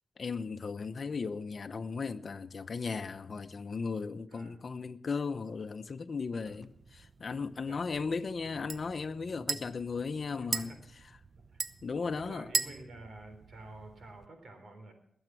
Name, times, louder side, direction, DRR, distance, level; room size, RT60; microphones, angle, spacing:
voice 1, 0.2-10.7 11.8-12.5, left 5 dB, 60° left, 0.8 m, -36 dB
voice 2, 4.3-4.6 6.3-6.7 7.7-7.8 9.3-9.6 10.3-10.8 11.5-11.6 12.1-14.9, right 2 dB, 80° right, 3.6 m, -50 dB
sound 1, 6.5-14.3, right 4 dB, 60° right, 0.8 m, -40 dB
20.5 x 8.1 x 6.2 m
cardioid pair, 70°, 0 cm